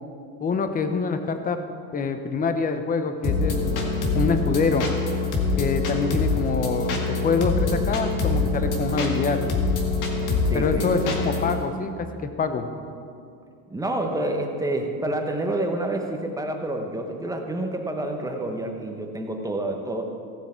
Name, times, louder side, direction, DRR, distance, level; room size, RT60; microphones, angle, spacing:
voice 1, 0.4-1.6 1.9-3.9 4.1-4.9 5.6-7.0 7.2-9.4 10.5-12.7, left 4 dB, 20° left, 8 dB, 0.8 m, -25 dB
sound 1, 3.2-11.6, left 3 dB, 45° left, 1.9 m, -25 dB
voice 2, 10.4-11.2 13.7-20.0, right 1 dB, 10° right, 3 dB, 1.0 m, -28 dB
15.5 x 7.2 x 4.4 m, 2.4 s
supercardioid pair, 120°, 41 cm